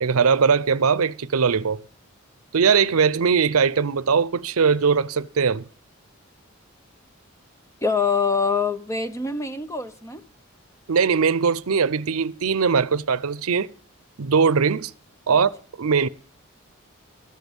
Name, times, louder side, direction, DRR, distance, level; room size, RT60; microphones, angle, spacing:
voice 1, 0.0-1.8 2.5-5.6 10.9-13.7 14.2-14.9 15.3-15.5 15.8-16.1, right 5 dB, 85° right, 0.6 m, -20 dB
voice 2, 7.8-10.2 15.3-15.4, left 5 dB, 15° left, 0.7 m, -24 dB
13.5 x 7.2 x 7.9 m
head